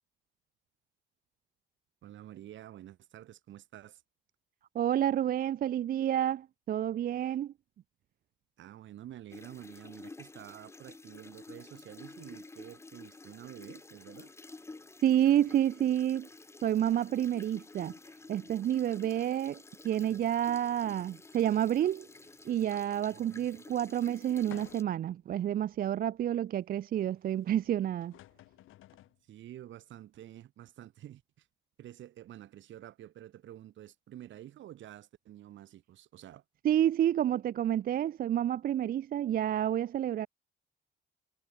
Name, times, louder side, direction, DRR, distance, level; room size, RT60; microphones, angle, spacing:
voice 1, 2.0-4.0 7.1-7.3 8.6-14.3 23.1-23.5 29.3-31.5 31.8-36.4, right 12 dB, 75° right, 1.5 m, -49 dB
voice 2, 4.7-7.5 15.0-16.3 16.6-17.9 18.3-22.1 22.4-28.1 36.6-40.3, right 11 dB, 50° right, 0.4 m, -29 dB
sound 1, 9.3-24.8, left 3 dB, 15° left, 0.6 m, -51 dB
sound 2, 24.5-25.1 25.7-25.8 27.6-27.7 28.0-29.2, left 14 dB, 85° left, 2.9 m, -53 dB
cardioid pair, 90°, 20 cm